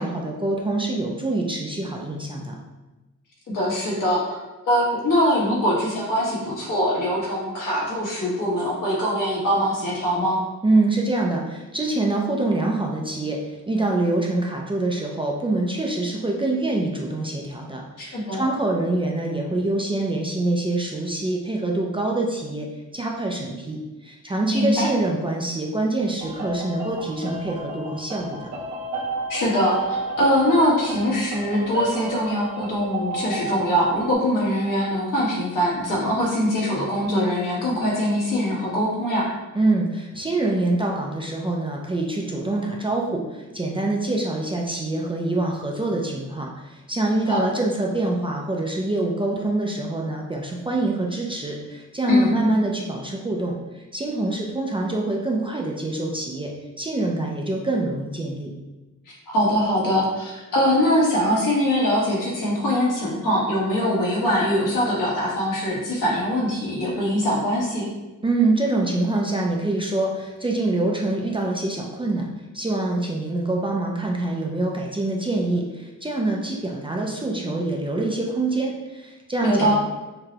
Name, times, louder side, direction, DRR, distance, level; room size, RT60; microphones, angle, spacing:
voice 1, 0.0-2.6 10.6-22.7 22.9-28.5 39.5-56.5 56.8-58.5 68.2-72.3 72.5-79.7, right 2 dB, 15° right, -1 dB, 0.3 m, -25 dB
voice 2, 3.5-4.4 4.6-10.4 18.0-18.4 24.5-24.9 29.3-39.3 47.3-47.4 52.1-52.4 59.3-67.9 79.4-79.7, equal, 80° left, -5 dB, 1.4 m, -22 dB
sound 1, 26.2-34.1, right 2 dB, 65° right, 0.8 m, -32 dB
5.9 x 2.2 x 2.7 m, 1.1 s
wide cardioid pair, 165°, 32 cm